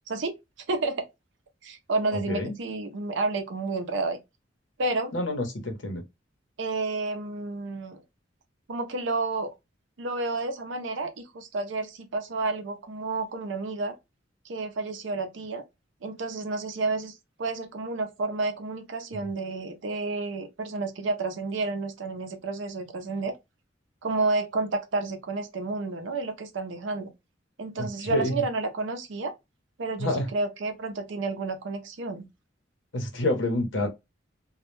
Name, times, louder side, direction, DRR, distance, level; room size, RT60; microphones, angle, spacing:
voice 1, 0.7-1.0 1.6-4.2 4.8-5.1 6.6-8.0 8.7-9.5 10.0-13.9 14.4-15.6 16.0-23.4 24.0-27.1 27.6-29.3 29.8-32.2, right 3 dB, 70° right, 0.5 m, -30 dB
voice 2, 2.1-2.5 5.1-6.0 27.8-28.3 30.0-30.3 32.9-33.9, left 1 dB, 75° left, 0.8 m, -28 dB
2.2 x 2.1 x 3.0 m
head